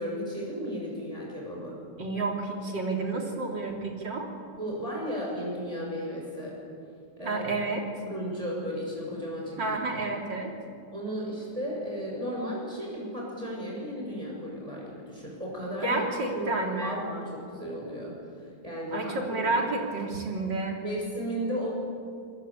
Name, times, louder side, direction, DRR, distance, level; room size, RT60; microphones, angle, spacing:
voice 1, 0.0-1.8 4.6-6.6 7.2-7.5 8.1-9.7 10.9-16.0 16.3-18.2 18.6-19.1 20.8-21.7, equal, 20° right, -3 dB, 6.6 m, -34 dB
voice 2, 2.0-4.3 7.2-8.0 9.6-10.5 15.8-17.0 18.9-20.8, right 2 dB, 85° right, 1 dB, 4.2 m, -30 dB
27.0 x 20.5 x 8.7 m, 2.3 s
omnidirectional pair, 1.9 m